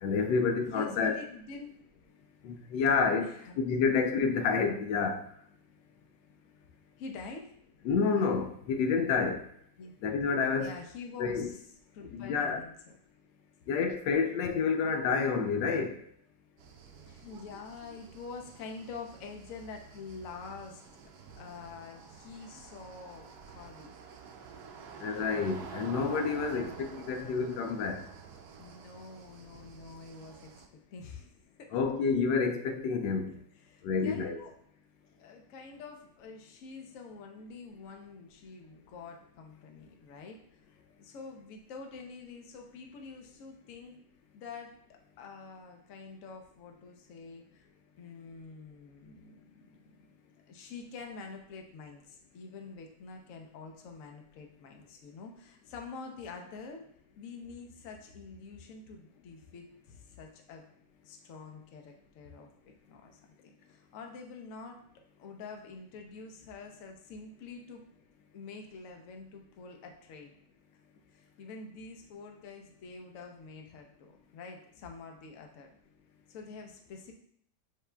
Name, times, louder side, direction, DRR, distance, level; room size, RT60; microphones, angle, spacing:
voice 1, 0.0-1.2 2.4-5.2 7.8-9.4 10.0-10.7 11.2-11.5 12.0-12.6 13.7-15.9 25.0-28.0 31.7-33.3 33.8-34.4, left 5 dB, 85° left, 5 dB, 1.2 m, -29 dB
voice 2, 0.6-1.7 3.2-3.5 7.0-7.5 9.8-9.9 10.6-11.6 11.9-12.7 16.9-20.8 21.4-23.9 26.3-26.7 28.6-30.6 30.9-31.3 31.6-31.7 33.7-34.5 35.1-40.4 40.7-44.0 44.3-47.7 47.9-50.1 50.5-56.9 57.2-60.6 61.0-64.8 65.2-67.8 68.3-70.3 71.1-75.7 76.3-77.1, left 4 dB, 60° left, 3 dB, 0.9 m, -47 dB
sound 1, 16.6-30.7, right 6 dB, 75° right, 1.0 m, -49 dB
7.9 x 2.7 x 2.2 m, 0.66 s
omnidirectional pair, 1.9 m